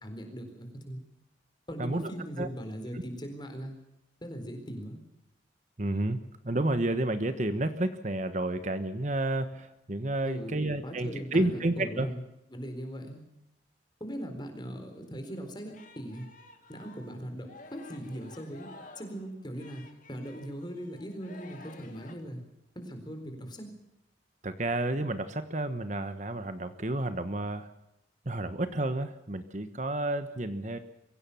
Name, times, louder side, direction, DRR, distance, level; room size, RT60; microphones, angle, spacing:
voice 1, 0.0-1.0 1.7-3.8 4.2-5.0 10.2-12.2 12.5-13.2 14.0-16.3 16.7-18.7 19.0-22.4 22.7-23.7, equal, 25° left, 6 dB, 4.2 m, -40 dB
voice 2, 5.8-6.2 6.4-12.1 24.4-27.7 28.2-30.8, right 1 dB, 40° right, 10 dB, 1.2 m, -30 dB
Singing, 15.3-22.1, left 2 dB, 45° left, 2.7 m, -52 dB
23.5 x 16.5 x 7.1 m, 0.87 s
head